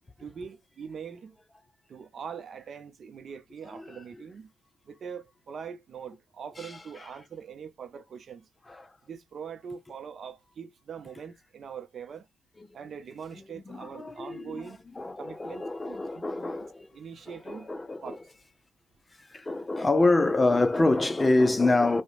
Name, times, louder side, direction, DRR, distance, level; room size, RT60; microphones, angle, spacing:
voice 1, 0.2-1.4 1.9-4.5 4.8-8.5 9.0-12.3 12.7-14.8 15.2-16.5 16.9-17.7 18.0-18.2, right 6 dB, 55° right, 0.7 m, -42 dB
voice 2, 13.7-17.0 17.3-18.2 19.2-22.0, left 2 dB, 20° left, 0.6 m, -26 dB
4.8 x 2.2 x 2.5 m
cardioid pair, 90°, 0 cm